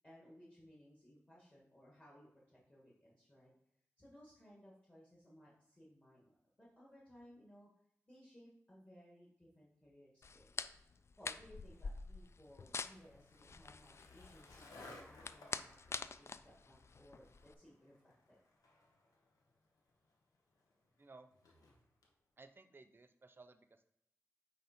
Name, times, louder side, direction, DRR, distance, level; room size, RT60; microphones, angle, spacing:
voice 1, 0.0-3.5 4.0-7.7 8.1-10.7 11.2-18.4, equal, 20° left, -5 dB, 1.7 m, -62 dB
sound 1, 10.2-17.5, left 4 dB, 50° left, 0.3 m, -47 dB
Skateboard, 11.6-22.1, left 2 dB, 90° left, 1.3 m, -62 dB
voice 2, 21.0-21.3 22.4-23.8, right 3 dB, 40° right, 9 dB, 0.6 m, -59 dB
9.2 x 3.3 x 4.4 m, 0.75 s
wide cardioid pair, 80°, 6 cm